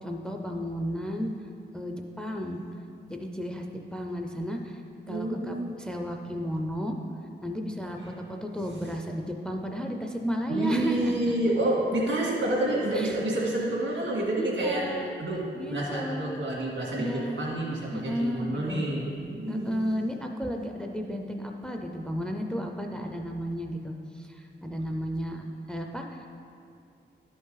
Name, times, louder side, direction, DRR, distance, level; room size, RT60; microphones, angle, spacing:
voice 1, 0.0-1.3 1.7-2.6 3.1-3.7 3.9-4.8 5.1-6.9 7.4-11.4 12.9-13.1 14.4-15.1 15.5-16.4 17.0-17.4 17.9-18.9 19.5-26.3, equal, 5° left, 2 dB, 0.4 m, -33 dB
voice 2, 5.1-5.7 8.7-8.9 10.5-14.9 15.2-19.8, right 1 dB, 85° right, -4 dB, 1.9 m, -29 dB
11.0 x 5.2 x 3.9 m, 2.5 s
wide cardioid pair, 175°, 19 cm